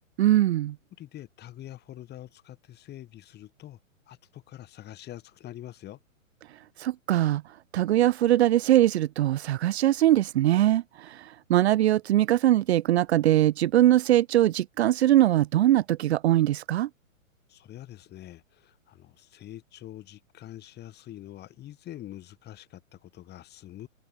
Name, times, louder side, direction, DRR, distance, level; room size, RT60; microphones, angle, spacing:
voice 1, 0.2-0.8 6.8-7.4 7.7-16.9, right 13 dB, 50° right, 2.0 m, -22 dB
voice 2, 1.0-3.8 4.1-6.0 17.5-23.9, left 13 dB, 25° left, 7.8 m, -45 dB
hypercardioid pair, 120°, 41 cm